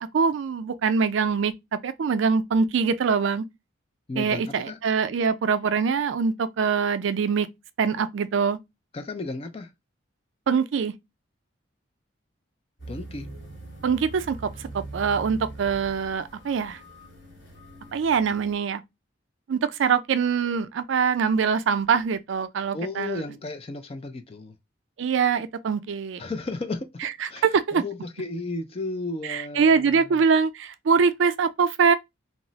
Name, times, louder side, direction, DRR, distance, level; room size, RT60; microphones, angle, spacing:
voice 1, 0.0-3.4 4.2-7.5 7.8-8.6 10.5-10.9 13.8-14.4 14.7-16.8 17.9-18.8 19.5-23.3 25.0-26.2 27.0-27.8 29.2-31.9, right 6 dB, 75° right, 0.4 m, -23 dB
voice 2, 4.1-4.8 8.9-9.7 12.9-13.3 22.7-24.6 26.2-27.4 27.7-30.0, left 2 dB, 30° left, 0.4 m, -34 dB
sound 1, 12.8-18.6, right 2 dB, 60° left, 1.1 m, -42 dB
2.3 x 2.0 x 3.9 m
head